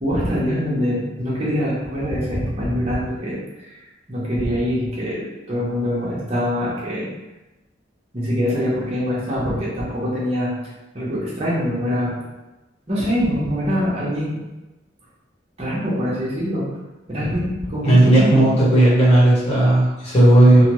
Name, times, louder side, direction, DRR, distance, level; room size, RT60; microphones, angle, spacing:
voice 1, 0.0-3.8 4.1-7.1 8.1-10.6 10.9-12.2 12.9-14.4 15.6-16.7 17.1-18.5, equal, 30° right, -7 dB, 1.0 m, -24 dB
voice 2, 17.8-20.7, right 1 dB, 35° left, -8 dB, 1.2 m, -14 dB
3.3 x 2.2 x 3.0 m, 1.1 s
head